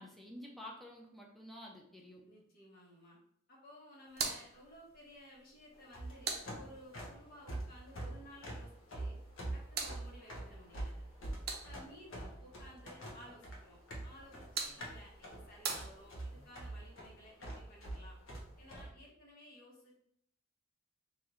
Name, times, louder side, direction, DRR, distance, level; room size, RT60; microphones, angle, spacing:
voice 1, 0.0-2.2, left 1 dB, ahead, -2 dB, 0.6 m, -50 dB
voice 2, 2.3-3.2 3.5-9.2 9.5-11.0 11.5-18.2 18.6-19.9, equal, 50° left, -3 dB, 1.3 m, -56 dB
sound 1, 4.1-7.1 9.1-12.1 14.1-16.5, right 5 dB, 50° right, 0.6 m, -44 dB
sound 2, 5.8-18.9, right 1 dB, 75° left, 0.9 m, -45 dB
3.0 x 2.7 x 3.8 m, 0.70 s
head